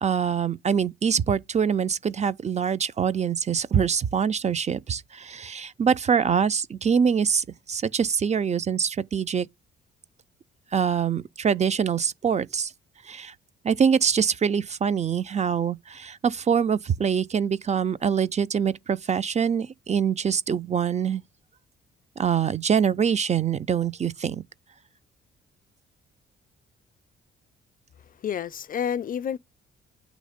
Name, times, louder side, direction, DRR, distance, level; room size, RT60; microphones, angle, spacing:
voice 1, 0.0-9.5 10.7-12.7 13.0-13.3 13.6-21.2 22.2-24.4, right 7 dB, 35° right, 0.5 m, -24 dB
voice 2, 28.0-29.4, left 8 dB, 45° left, 0.4 m, -30 dB
9.2 x 3.1 x 5.0 m
cardioid pair, 90°, 20 cm